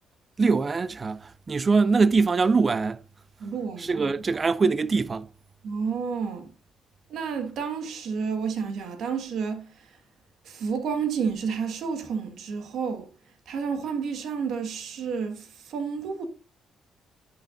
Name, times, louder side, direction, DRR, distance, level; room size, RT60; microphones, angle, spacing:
voice 1, 0.4-3.0 3.8-5.3, right 4 dB, 35° right, 0.4 m, -23 dB
voice 2, 3.4-4.2 5.6-6.5 7.1-9.7 10.4-13.1 13.5-16.3, right 6 dB, 75° right, 1.6 m, -30 dB
10.5 x 5.7 x 2.5 m
cardioid pair, 90°, 0 cm